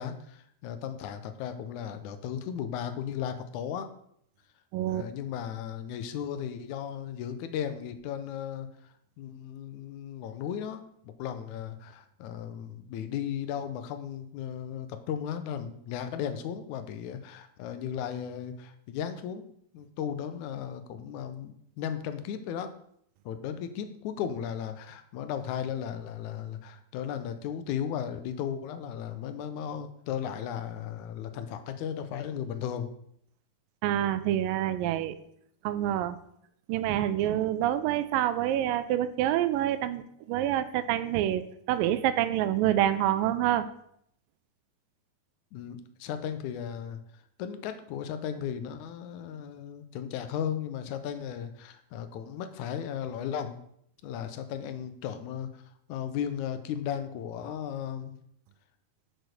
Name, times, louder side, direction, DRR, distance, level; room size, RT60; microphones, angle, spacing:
voice 1, 0.0-3.9 4.9-8.7 9.2-19.5 19.7-22.7 23.3-32.9 45.5-47.0 47.4-53.6 54.0-55.6 55.9-58.1, left 9 dB, 75° left, 9 dB, 2.0 m, -35 dB
voice 2, 4.7-5.1 33.8-35.2 35.6-36.2 36.7-43.7, right 12 dB, 85° right, 12 dB, 2.3 m, -27 dB
6.6 x 6.3 x 6.5 m, 0.69 s
omnidirectional pair, 3.9 m